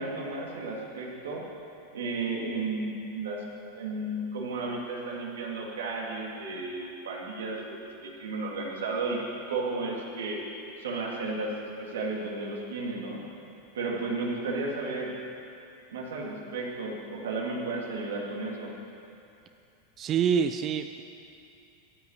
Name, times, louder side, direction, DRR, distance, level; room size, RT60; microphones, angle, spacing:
voice 1, 0.0-1.4 1.9-3.4 3.7-9.2 9.5-10.4 10.8-11.5 11.8-13.2 13.7-15.1 15.9-18.7, right 3 dB, 90° right, -2 dB, 2.4 m, -33 dB
voice 2, 20.0-21.0, right 7 dB, 35° right, 8 dB, 0.4 m, -26 dB
13.0 x 5.8 x 8.9 m, 2.7 s
hypercardioid pair, 115°, 0 cm